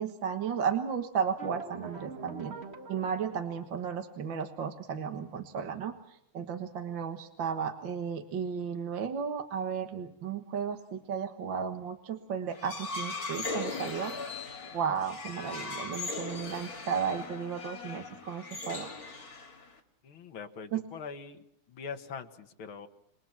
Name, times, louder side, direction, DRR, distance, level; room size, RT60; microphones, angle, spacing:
voice 1, 0.0-2.6 2.9-5.9 6.3-14.1 14.7-18.9 20.7-20.8, right 7 dB, 60° right, 6 dB, 2.1 m, -34 dB
sound 1, 1.4-4.1, right 3 dB, 30° right, 1.8 m, -45 dB
sound 2, 12.5-19.8, left 3 dB, 40° left, 2.7 m, -39 dB
voice 2, 20.0-22.9, left 6 dB, 70° left, 6 dB, 2.4 m, -43 dB
28.0 x 24.0 x 6.0 m, 0.74 s
omnidirectional pair, 2.4 m